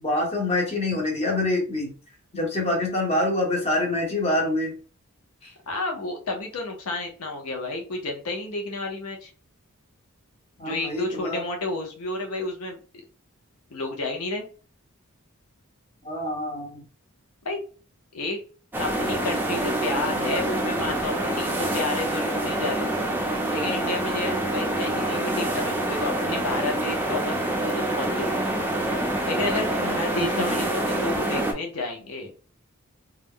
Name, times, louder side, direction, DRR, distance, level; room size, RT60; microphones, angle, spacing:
voice 1, 0.0-1.9 2.3-4.7 10.6-11.4 16.0-16.8 30.1-30.3, left 2 dB, 30° left, -1 dB, 0.9 m, -25 dB
voice 2, 5.7-9.3 10.6-12.8 13.7-14.5 17.4-17.6 18.1-18.4 18.8-22.9 23.5-28.7 29.3-32.3, left 2 dB, 90° left, 2 dB, 0.7 m, -31 dB
sound 1, 18.7-31.5, right 1 dB, 10° right, 0.4 m, -26 dB
2.3 x 2.1 x 3.5 m, 0.37 s
head